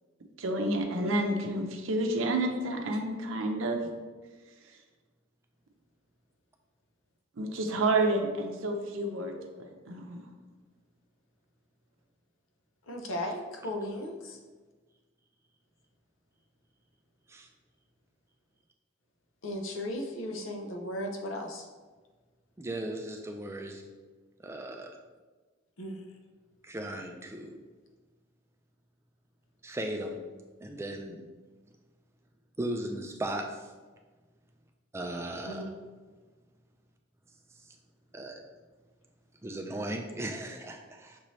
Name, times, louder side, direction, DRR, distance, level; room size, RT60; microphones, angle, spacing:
voice 1, 0.4-3.9 7.4-9.3 9.9-10.2, right 2 dB, 75° right, 3 dB, 0.6 m, -29 dB
voice 2, 12.9-14.4 19.4-21.7 25.8-26.0 35.5-35.7, left 1 dB, 80° left, 2 dB, 0.7 m, -36 dB
voice 3, 22.6-23.8 24.4-25.0 26.6-27.6 29.6-30.2 30.6-31.2 32.6-33.7 34.9-35.6 38.1-38.4 39.4-41.2, right 1 dB, 15° right, 3 dB, 0.3 m, -37 dB
6.0 x 2.7 x 3.1 m, 1.3 s
head